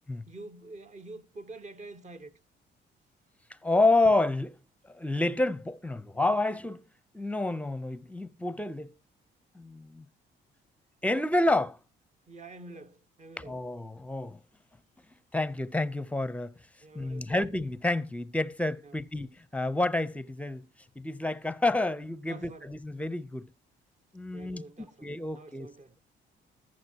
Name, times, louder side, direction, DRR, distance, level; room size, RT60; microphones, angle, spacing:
voice 1, 0.3-2.3 12.3-13.6 16.8-17.4 18.8-19.0 22.3-22.7 24.3-26.0, right 2 dB, 35° right, 1.3 m, -47 dB
voice 2, 3.6-4.6 4.9-6.8 7.1-8.9 9.5-10.0 11.0-11.8 13.4-14.4 15.3-16.5 16.9-20.6 21.0-23.5 24.1-25.7, left 2 dB, 5° left, 0.7 m, -29 dB
20.5 x 7.6 x 2.9 m
cardioid pair, 90°, 20 cm